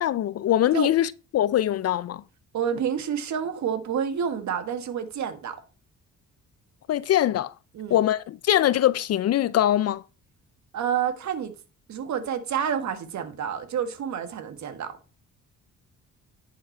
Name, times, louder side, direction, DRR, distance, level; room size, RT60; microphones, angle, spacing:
voice 1, 0.0-2.2 6.9-7.5 7.9-10.0, left 12 dB, 55° left, 0.5 m, -22 dB
voice 2, 2.5-5.6 7.7-8.0 10.7-11.5 11.9-15.0, right 8 dB, 70° right, 1.7 m, -29 dB
10.5 x 5.8 x 4.5 m
cardioid pair, 90°, 30 cm